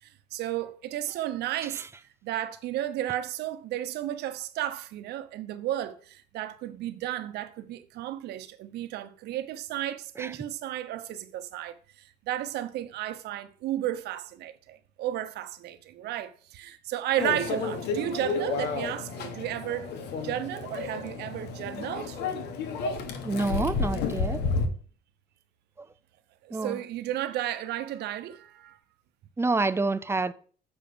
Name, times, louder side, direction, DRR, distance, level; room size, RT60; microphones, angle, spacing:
voice 1, 0.0-1.9 2.2-20.0 20.2-22.2 26.4-28.8, right 12 dB, 75° right, 0.9 m, -33 dB
Microwave oven, 17.2-24.7, left 4 dB, 80° left, 1.3 m, -31 dB
voice 2, 23.2-24.4 26.5-26.8 29.4-30.3, right 3 dB, 15° right, 0.5 m, -27 dB
7.3 x 5.1 x 6.8 m
cardioid pair, 110°, 17 cm